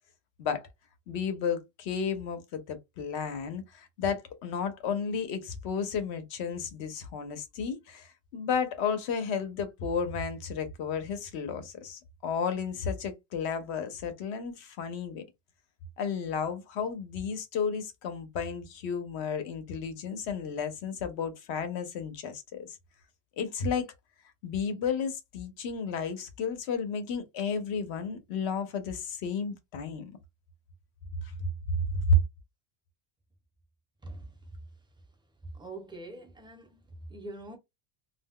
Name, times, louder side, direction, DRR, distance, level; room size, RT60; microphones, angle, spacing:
voice 1, 1.1-15.2 16.0-22.8 23.4-23.9 24.4-30.1 32.1-32.2, left 4 dB, 80° left, 0.9 m, -32 dB
voice 2, 34.0-34.4 35.5-36.8 37.1-37.6, right 2 dB, 5° right, 0.5 m, -43 dB
2.3 x 2.1 x 3.5 m
omnidirectional pair, 1.1 m